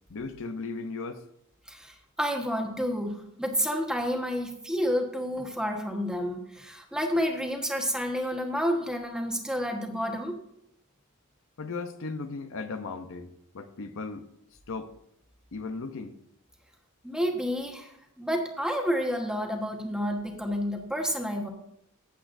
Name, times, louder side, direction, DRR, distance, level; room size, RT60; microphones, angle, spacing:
voice 1, 0.1-1.2 11.6-14.2 14.7-14.9 15.5-16.1, left 3 dB, 60° left, 0.7 m, -36 dB
voice 2, 1.7-10.4 17.0-21.5, equal, 5° right, 1.2 m, -30 dB
15.0 x 8.0 x 2.6 m
head